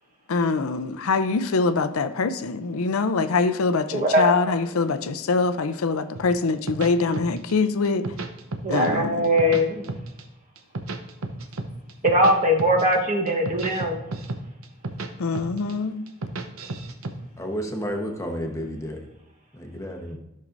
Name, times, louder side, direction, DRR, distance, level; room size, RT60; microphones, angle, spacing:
voice 1, 0.3-8.0 8.7-9.3 15.2-16.0, left 4 dB, 85° left, 0.5 m, -24 dB
voice 2, 3.9-4.5 8.6-9.8 12.0-14.1, equal, 35° right, 1.1 m, -21 dB
sound 1, 6.1-7.5 7.8-9.0 9.2-10.2 10.6-12.3 12.6-12.9 13.3-15.1 15.3-15.7 16.1-17.1, right 3 dB, 85° right, 0.8 m, -32 dB
voice 3, 17.4-19.1 19.5-20.2, equal, 15° left, 1.0 m, -31 dB
13.5 x 6.5 x 2.6 m
head